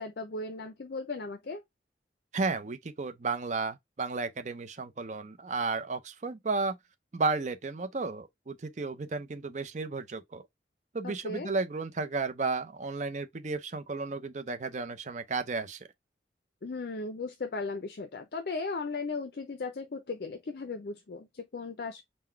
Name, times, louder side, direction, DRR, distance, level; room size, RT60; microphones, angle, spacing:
voice 1, 0.0-1.6 11.0-11.5 16.6-22.0, left 3 dB, 60° left, 0.5 m, -37 dB
voice 2, 2.3-6.8 7.1-10.4 10.9-15.9, right 3 dB, 40° right, 0.5 m, -33 dB
3.8 x 2.2 x 4.4 m
head